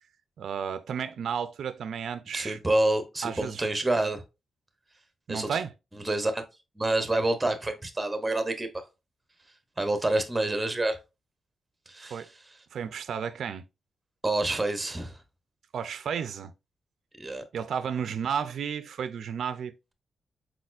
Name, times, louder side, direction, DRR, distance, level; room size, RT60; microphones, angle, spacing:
voice 1, 0.4-2.6 3.2-3.6 5.3-5.7 12.0-12.3 12.7-13.6 15.7-16.5 17.5-19.9, right 7 dB, 70° right, 0.3 m, -33 dB
voice 2, 2.3-4.2 5.3-5.5 6.1-6.4 6.8-8.8 9.8-11.0 11.9-12.2 14.2-15.2 17.2-17.4, right 2 dB, 10° right, 0.7 m, -27 dB
4.5 x 4.1 x 2.5 m
wide cardioid pair, 145°, 0 cm